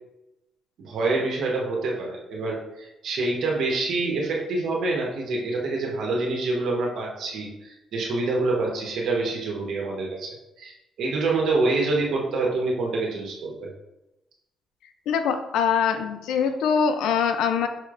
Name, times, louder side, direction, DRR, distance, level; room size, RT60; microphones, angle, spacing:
voice 1, 0.8-13.7, right 3 dB, 75° right, -1 dB, 1.0 m, -26 dB
voice 2, 15.1-17.7, left 7 dB, 85° left, 8 dB, 0.4 m, -23 dB
5.6 x 3.0 x 2.5 m, 0.93 s
cardioid pair, 90°, 0 cm